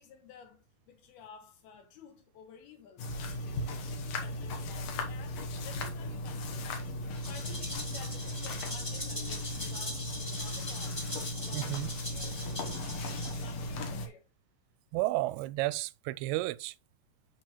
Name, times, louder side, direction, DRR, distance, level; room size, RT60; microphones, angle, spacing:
voice 1, 0.0-3.1 3.4-11.0 11.4-14.3, left 7 dB, 70° left, 3.1 m, -53 dB
sound 1, 3.0-14.1, left 1 dB, 90° left, 1.4 m, -37 dB
Rattle (instrument), 7.1-13.7, left 1 dB, 20° left, 0.7 m, -41 dB
voice 2, 11.5-11.9 14.9-16.8, right 18 dB, 85° right, 2.4 m, -32 dB
9.2 x 4.6 x 3.1 m
omnidirectional pair, 4.8 m